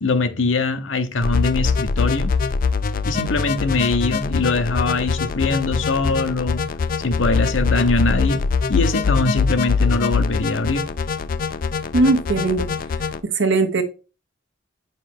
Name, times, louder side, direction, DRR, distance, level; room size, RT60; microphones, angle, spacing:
voice 1, 0.0-2.4 3.1-6.6 7.0-8.4 8.7-10.9, left 3 dB, 80° left, 0.8 m, -22 dB
sound 1, 1.2-13.2, left 5 dB, 45° left, 0.4 m, -23 dB
voice 2, 11.9-12.7 13.3-13.8, right 3 dB, 75° right, 1.1 m, -18 dB
5.4 x 5.2 x 3.5 m
head